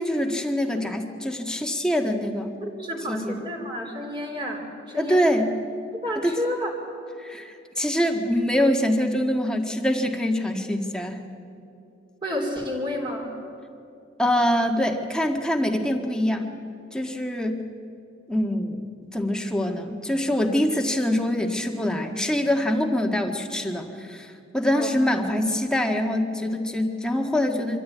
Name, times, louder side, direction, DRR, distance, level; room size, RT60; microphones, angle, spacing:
voice 1, 0.0-2.5 3.1-3.4 5.0-5.5 6.2-6.3 7.2-11.2 14.2-16.5 16.9-17.6 18.3-18.8 19.1-27.8, left 1 dB, 5° left, 3 dB, 1.6 m, -24 dB
voice 2, 2.6-5.3 5.9-6.7 12.2-13.3 24.8-24.9, left 1 dB, 25° right, -1 dB, 3.7 m, -30 dB
24.5 x 14.0 x 9.4 m, 2.7 s
head